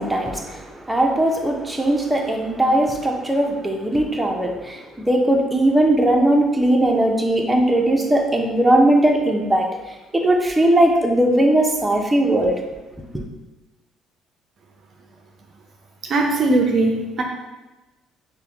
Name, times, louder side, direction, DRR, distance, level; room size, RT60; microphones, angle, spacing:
voice 1, 0.0-12.6 13.1-13.2, right 1 dB, 10° right, 1 dB, 0.8 m, -19 dB
voice 2, 16.0-17.2, right 2 dB, 50° right, 1 dB, 0.5 m, -19 dB
5.6 x 2.2 x 3.6 m, 1.1 s
hypercardioid pair, 50°, 0 cm